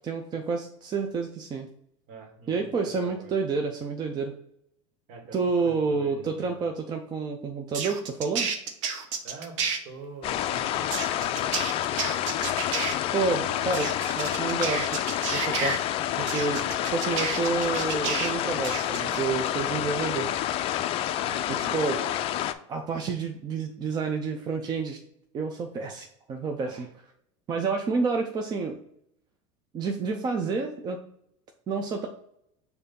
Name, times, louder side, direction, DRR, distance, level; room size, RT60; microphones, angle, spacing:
voice 1, 0.0-1.7 2.5-4.3 5.3-8.5 13.1-13.9 14.2-15.0 15.3-15.8 16.2-16.6 16.9-20.3 21.5-22.0 22.7-25.0 25.3-26.8 27.5-28.8 29.7-31.0 31.7-32.1, right 4 dB, 25° right, 3 dB, 0.6 m, -29 dB
voice 2, 2.1-3.3 5.1-6.7 9.2-11.7 12.5-12.6 13.3-13.8 16.6-16.7 19.7-19.9 21.2-22.3 26.6-26.9, right 3 dB, 55° right, 3 dB, 1.6 m, -45 dB
sound 1, 7.7-9.8 10.9-12.9 13.7-15.8 16.3-18.3 18.6-19.2, right 5 dB, 80° right, 1.0 m, -31 dB
sound 2, 10.2-22.5, left 12 dB, 40° left, 0.4 m, -28 dB
6.7 x 2.8 x 5.2 m, 0.73 s
supercardioid pair, 135°, 16 cm